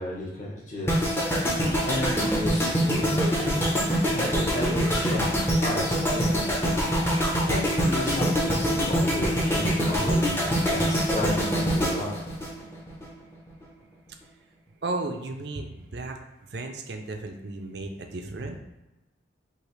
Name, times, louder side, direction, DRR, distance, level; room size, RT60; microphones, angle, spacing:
voice 1, 0.0-3.6 4.1-5.2 5.6-12.1, left 1 dB, 40° left, -5 dB, 1.0 m, -33 dB
sound 1, 0.9-13.1 13.3-13.6, equal, 15° left, 0.7 m, -25 dB
voice 2, 14.8-16.2 16.5-18.6, right 2 dB, 55° right, 4 dB, 0.5 m, -34 dB
4.8 x 2.9 x 3.1 m, 1.1 s
head